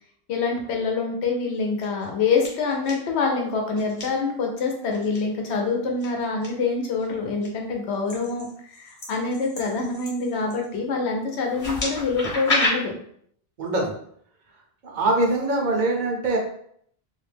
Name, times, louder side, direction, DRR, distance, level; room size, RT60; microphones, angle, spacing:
voice 1, 0.3-12.9, left 4 dB, 90° left, 1 dB, 0.9 m, -26 dB
sound 1, 1.5-2.0 2.4-2.9 3.8-4.0 4.9-5.2 6.0-6.5 7.0-7.5 8.1-10.7 11.4-12.7, left 2 dB, 35° left, 0.8 m, -30 dB
voice 2, 13.6-13.9 14.8-16.4, right 2 dB, 55° right, -1 dB, 0.6 m, -23 dB
2.4 x 2.1 x 3.2 m, 0.65 s
omnidirectional pair, 1.1 m